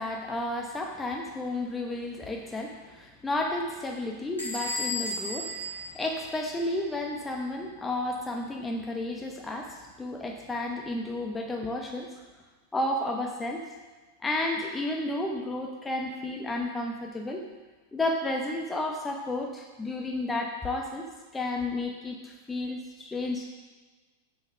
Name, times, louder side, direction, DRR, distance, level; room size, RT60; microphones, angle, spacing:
voice 1, 0.0-12.1 12.7-13.6 14.2-17.4 17.9-21.0 21.3-23.4, left 2 dB, 10° left, 1 dB, 0.9 m, -32 dB
Bell / Squeak, 4.4-6.9, left 1 dB, 85° left, 2.6 m, -35 dB
7.3 x 6.3 x 6.3 m, 1.3 s
figure-of-eight pair, 90°, 0 cm